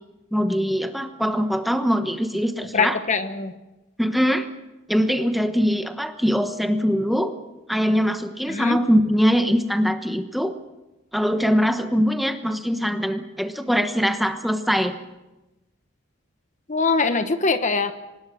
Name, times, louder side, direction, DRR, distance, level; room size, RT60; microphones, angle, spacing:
voice 1, 0.3-3.0 4.0-4.5 4.9-7.3 7.7-10.5 11.1-15.0, equal, ahead, 7 dB, 1.1 m, -22 dB
voice 2, 2.7-3.5 8.5-8.8 16.7-17.9, left 4 dB, 35° left, 9 dB, 1.1 m, -22 dB
25.0 x 19.5 x 6.4 m, 1.0 s
head